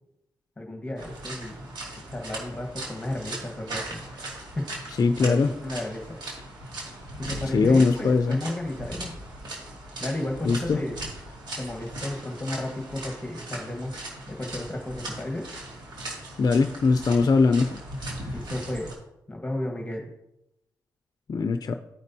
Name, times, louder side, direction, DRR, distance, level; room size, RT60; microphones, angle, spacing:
voice 1, 0.6-1.7 2.1-4.0 4.6-4.7 5.2-5.4 5.6-6.2 7.2-9.1 10.0-10.9 11.6-13.9 14.3-15.4 18.3-18.9 19.3-20.1, left 1 dB, 15° left, 1 dB, 1.4 m, -33 dB
sound 1, 1.0-18.9, right 1 dB, 75° right, 2.4 m, -38 dB
voice 2, 5.0-5.5 7.5-8.4 10.4-10.8 16.4-18.3 21.3-21.7, left 4 dB, 50° left, 7 dB, 0.5 m, -21 dB
14.0 x 5.2 x 2.7 m, 0.87 s
cardioid pair, 60°, 8 cm